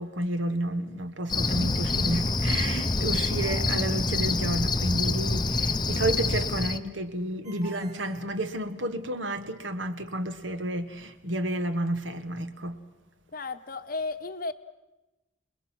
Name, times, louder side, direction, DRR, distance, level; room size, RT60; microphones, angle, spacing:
voice 1, 0.0-12.8, right 1 dB, 65° right, 10 dB, 1.5 m, -31 dB
Cricket, 1.3-6.8, left 3 dB, 20° left, 0.7 m, -26 dB
Ringtone, 3.3-4.9 7.4-9.1, right 3 dB, 40° right, 6.1 m, -50 dB
voice 2, 13.3-14.5, left 3 dB, 45° left, 10 dB, 0.9 m, -33 dB
27.5 x 21.0 x 6.2 m, 1.0 s
head